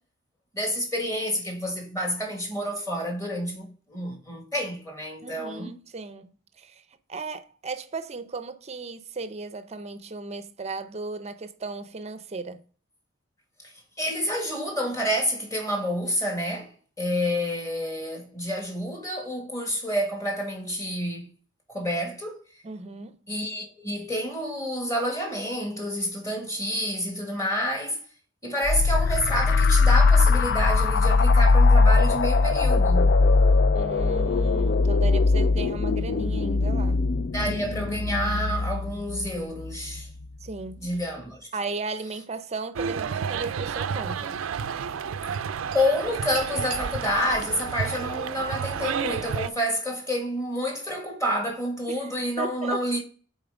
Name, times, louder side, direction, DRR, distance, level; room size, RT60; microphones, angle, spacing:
voice 1, 0.5-5.7 14.0-21.3 21.7-22.4 23.3-28.0 28.4-33.2 37.3-40.1 40.8-41.5 45.7-53.0, equal, 15° left, 2.0 m, -29 dB
voice 2, 5.2-6.8 7.1-12.6 22.6-23.2 33.7-37.1 40.4-40.8 41.5-44.4 51.9-52.1 52.4-52.8, right 3 dB, 30° right, 0.6 m, -36 dB
sound 1, 28.6-40.0, left 3 dB, 50° left, 0.4 m, -21 dB
sound 2, 42.7-49.5, right 7 dB, 75° right, 0.4 m, -31 dB
6.8 x 4.4 x 5.0 m
head